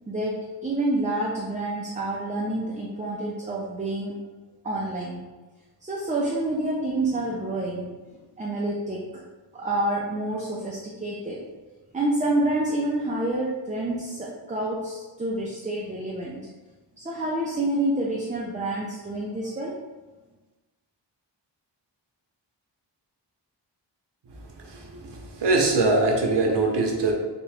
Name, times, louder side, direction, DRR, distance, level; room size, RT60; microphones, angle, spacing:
voice 1, 0.1-4.1 4.6-5.3 5.8-8.0 8.4-9.2 9.5-11.4 11.9-16.5 17.0-19.8, right 1 dB, 15° right, -4 dB, 0.5 m, -28 dB
voice 2, 24.7-27.1, right 2 dB, 65° right, 1 dB, 0.8 m, -23 dB
3.5 x 3.0 x 3.3 m, 1.2 s
wide cardioid pair, 110°, 44 cm